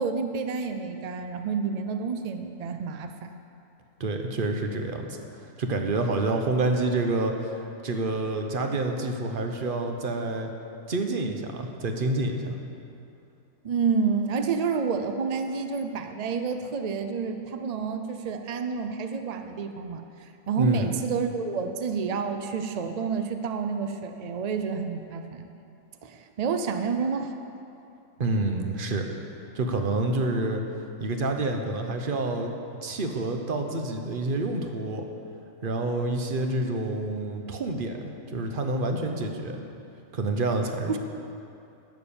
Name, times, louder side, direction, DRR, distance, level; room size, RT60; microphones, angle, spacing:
voice 1, 0.0-3.3 13.6-20.0 20.5-25.5 26.0-27.4 40.9-41.0, right 5 dB, 80° right, 6 dB, 0.3 m, -29 dB
voice 2, 4.0-10.5 10.9-12.6 20.6-20.9 28.2-29.0 29.5-30.6 31.0-32.5 32.8-35.0 35.6-39.6 40.1-41.0, right 2 dB, 45° right, 4 dB, 0.9 m, -28 dB
11.0 x 7.4 x 7.0 m, 2.7 s
omnidirectional pair, 1.5 m